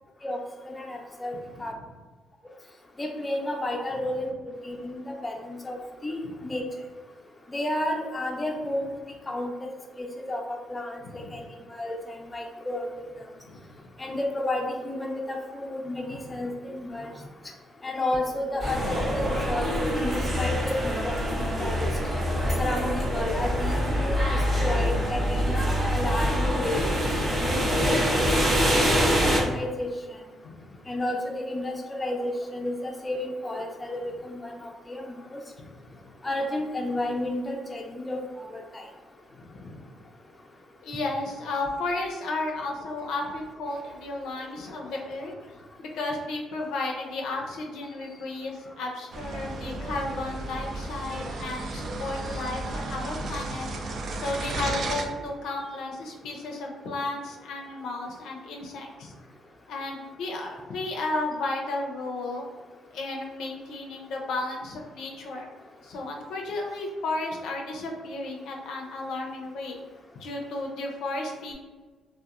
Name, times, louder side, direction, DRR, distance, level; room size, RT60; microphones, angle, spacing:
voice 1, 0.6-1.7 3.0-4.3 4.6-5.8 6.0-6.6 7.5-8.9 9.3-9.7 10.0-11.4 11.7-12.9 14.0-17.1 17.8-20.1 20.4-21.2 21.6-21.9 22.6-24.2 24.6-26.8 27.5-28.5 29.0-29.9 30.9-35.4 36.2-38.2 38.5-38.6, left 1 dB, 20° left, 1 dB, 0.4 m, -31 dB
voice 2, 11.0-11.5 13.5-13.6 16.1-16.3 30.4-30.6 35.6-35.7 39.4-39.9 40.8-45.3 45.8-53.7 54.1-59.1 59.7-62.4 62.9-65.5 65.8-69.8 70.2-71.5, left 2 dB, 80° left, 0 dB, 0.4 m, -33 dB
sound 1, 18.6-29.4, equal, 30° right, 0.7 m, -25 dB
sound 2, 49.1-55.0, right 2 dB, 60° right, 0.3 m, -34 dB
2.8 x 2.0 x 2.4 m, 1.3 s
cardioid pair, 90°, 0 cm